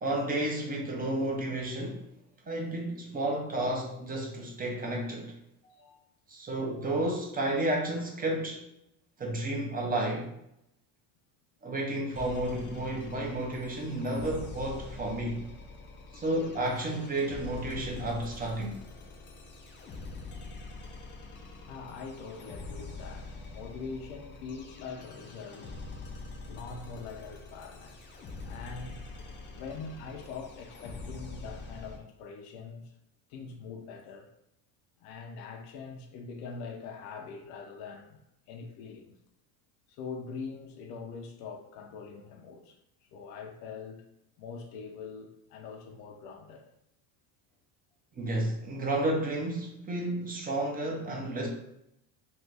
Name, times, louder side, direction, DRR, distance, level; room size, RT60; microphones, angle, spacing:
voice 1, 0.0-2.1 2.4-5.4 6.3-8.6 9.2-10.3 11.6-15.5 16.1-18.8 48.2-51.5, right 1 dB, 20° right, 0 dB, 0.6 m, -31 dB
voice 2, 5.6-6.0 21.7-25.7 26.4-28.0 28.4-29.0 29.5-32.9 33.3-34.3 35.0-38.2 38.5-39.1 39.9-42.8 43.1-44.1 44.4-46.7, left 5 dB, 65° left, 3 dB, 0.6 m, -43 dB
sound 1, 12.1-32.0, left 3 dB, 25° left, 0.4 m, -45 dB
2.6 x 2.4 x 3.3 m, 0.80 s
supercardioid pair, 120°, 45 cm